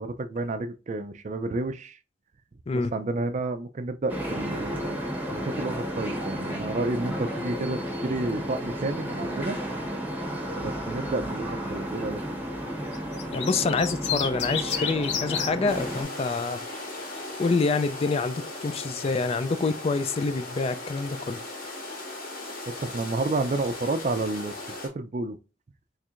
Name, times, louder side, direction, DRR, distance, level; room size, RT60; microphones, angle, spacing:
voice 1, 0.0-2.0 2.7-5.0 5.3-9.6 10.6-12.2 22.7-25.4, right 2 dB, 40° right, 0.4 m, -30 dB
sound 1, 4.1-16.0, equal, 10° right, 0.9 m, -33 dB
sound 2, 12.9-15.5 16.7-17.2, left 7 dB, 80° left, 0.7 m, -30 dB
voice 2, 13.3-16.6 17.4-21.4, left 4 dB, 35° left, 0.3 m, -27 dB
sound 3, 15.7-24.9, left 2 dB, 55° left, 1.5 m, -38 dB
4.5 x 3.2 x 2.5 m
head